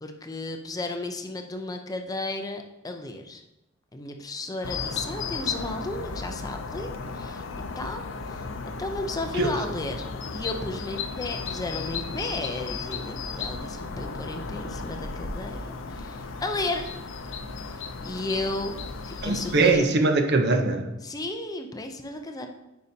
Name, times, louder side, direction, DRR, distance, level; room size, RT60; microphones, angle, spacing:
voice 1, 0.0-3.4 3.9-7.4 7.8-8.5 8.8-16.9 17.7-18.8 19.1-19.9 21.0-22.5, left 2 dB, 20° left, 5 dB, 0.5 m, -34 dB
sound 1, 4.6-19.8, left 4 dB, 70° left, 0.5 m, -35 dB
voice 2, 19.2-20.9, right 3 dB, 60° right, 5 dB, 0.7 m, -22 dB
9.3 x 5.3 x 2.7 m, 0.92 s
head